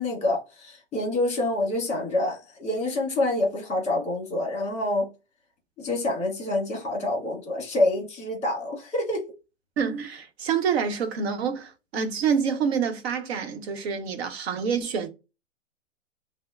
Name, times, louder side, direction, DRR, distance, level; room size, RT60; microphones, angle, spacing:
voice 1, 0.0-5.1 5.8-9.2, left 2 dB, 15° left, 1.6 m, -27 dB
voice 2, 9.8-15.1, right 6 dB, 55° right, 1.0 m, -27 dB
5.9 x 2.1 x 2.3 m
hypercardioid pair, 130°, 37 cm